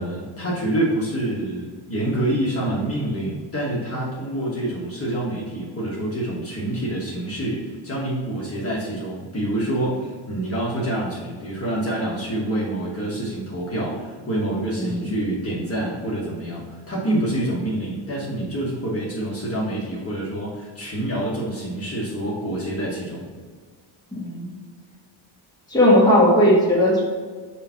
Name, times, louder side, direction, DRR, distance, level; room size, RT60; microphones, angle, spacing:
voice 1, 0.0-23.3, right 1 dB, 30° left, -6 dB, 1.3 m, -27 dB
voice 2, 14.8-15.1 24.1-24.5 25.7-27.0, left 1 dB, 10° left, -6 dB, 1.5 m, -17 dB
6.8 x 2.8 x 5.6 m, 1.6 s
cardioid pair, 150°, 46 cm